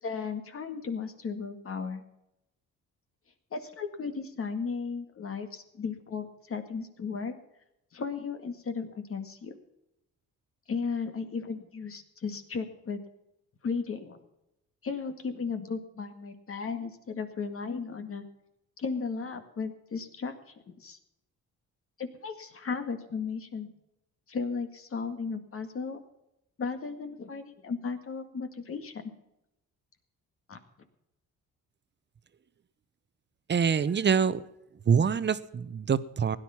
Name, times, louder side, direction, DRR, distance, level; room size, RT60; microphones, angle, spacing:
voice 1, 0.0-2.0 3.5-7.3 7.9-9.5 10.7-13.0 13.6-14.2 14.8-18.2 18.8-21.0 22.0-23.7 24.3-26.0 26.6-29.0 30.5-30.6, left 5 dB, 45° left, 8 dB, 2.0 m, -35 dB
voice 2, 33.5-34.4 34.9-36.4, right 6 dB, 35° right, 15 dB, 0.9 m, -25 dB
16.5 x 10.5 x 5.8 m, 0.85 s
cardioid pair, 90°, 30 cm